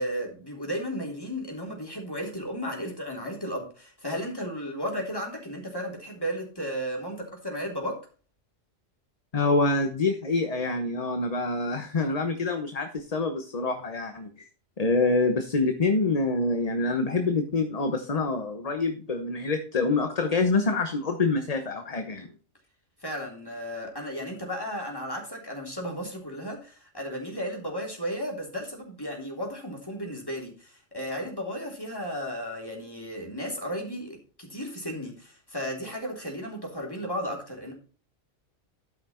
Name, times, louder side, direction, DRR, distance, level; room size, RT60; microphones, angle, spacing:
voice 1, 0.0-8.0 23.0-37.7, equal, 20° left, 0 dB, 3.5 m, -34 dB
voice 2, 9.3-14.3 14.8-22.3, left 3 dB, 35° left, 6 dB, 1.1 m, -26 dB
13.0 x 5.9 x 4.4 m, 0.38 s
omnidirectional pair, 1.2 m